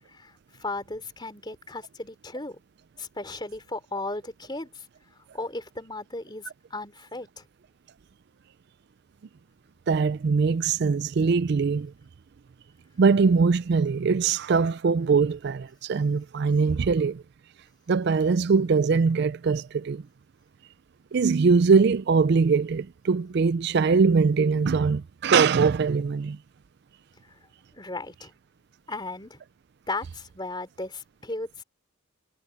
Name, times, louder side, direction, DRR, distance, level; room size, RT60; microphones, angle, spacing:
voice 1, 0.0-2.6 3.0-4.9 5.1-7.4 27.3-27.4 27.7-28.3 28.9-29.4 29.9-31.6, left 2 dB, 20° left, 3.4 m, -36 dB
voice 2, 9.9-11.9 13.0-17.2 17.9-20.0 21.1-26.4, right 5 dB, 55° right, 0.4 m, -22 dB
head